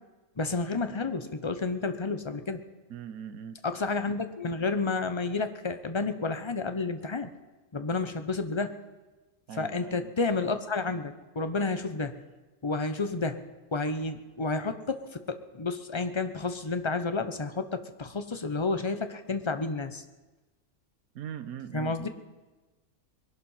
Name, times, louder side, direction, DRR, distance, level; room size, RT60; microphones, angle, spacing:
voice 1, 0.4-2.6 3.6-7.3 7.7-8.8 9.6-12.2 12.6-13.4 13.7-20.0 21.7-22.1, left 3 dB, 25° left, 10 dB, 0.7 m, -31 dB
voice 2, 2.9-3.6 9.5-10.1 21.1-22.1, right 8 dB, 75° right, 10 dB, 1.3 m, -41 dB
21.0 x 12.0 x 5.7 m, 1.2 s
omnidirectional pair, 1.5 m